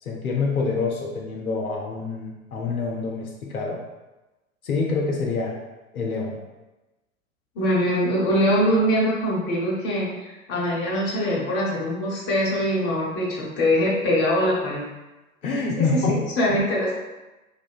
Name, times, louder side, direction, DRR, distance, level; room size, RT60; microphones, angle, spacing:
voice 1, 0.0-3.8 4.6-5.6 5.9-6.4 15.4-16.2, left 4 dB, 85° left, -1 dB, 0.5 m, -26 dB
voice 2, 7.5-14.8 15.8-16.9, equal, 25° left, -5 dB, 0.8 m, -23 dB
3.1 x 2.1 x 2.2 m, 1.1 s
figure-of-eight pair, 90°, 42 cm